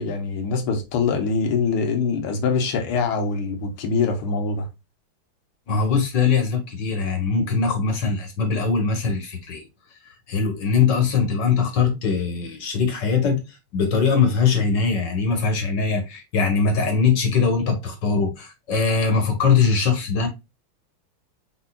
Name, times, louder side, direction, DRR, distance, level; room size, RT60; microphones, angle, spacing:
voice 1, 0.0-4.7, left 4 dB, 85° left, 2.0 m, -24 dB
voice 2, 5.7-9.7 10.3-20.3, left 5 dB, 60° left, 1.9 m, -21 dB
4.9 x 4.3 x 2.3 m
omnidirectional pair, 2.3 m